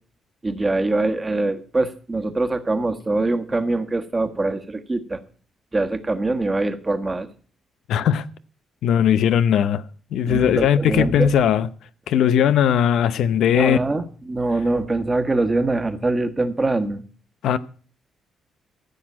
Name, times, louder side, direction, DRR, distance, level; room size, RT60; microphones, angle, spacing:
voice 1, 0.4-5.2 5.7-7.3 10.3-11.3 13.5-17.0, right 2 dB, 20° right, 1.4 m, -23 dB
voice 2, 7.9-8.3 8.8-9.8 10.1-11.7 12.1-13.8 17.4-17.6, left 9 dB, 80° left, 0.7 m, -18 dB
15.0 x 6.2 x 7.3 m
cardioid pair, 110°, 0 cm